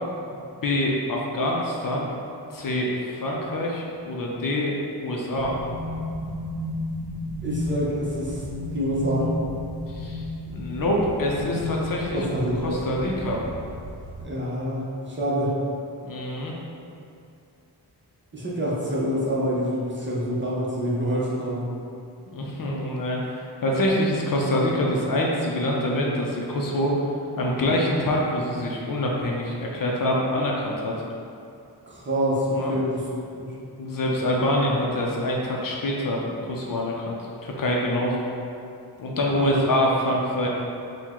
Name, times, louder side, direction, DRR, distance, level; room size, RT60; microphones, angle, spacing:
voice 1, 0.6-2.1 2.5-4.7 5.0-5.5 9.9-10.2 10.5-12.3 12.6-13.4 16.0-16.5 22.3-27.0 27.4-30.9 32.5-32.7 33.8-37.2 37.4-38.3 39.0-40.5, left 1 dB, 55° left, -2 dB, 0.5 m, -25 dB
sound 1, 5.3-14.3, left 1 dB, 70° right, 0.6 m, -33 dB
voice 2, 7.4-8.4 8.7-9.3 12.1-12.8 14.2-15.5 18.3-21.7 31.9-33.0 33.4-33.5 39.1-39.8, equal, 30° right, -6 dB, 0.6 m, -26 dB
4.5 x 2.2 x 3.6 m, 2.5 s
wide cardioid pair, 175°, 41 cm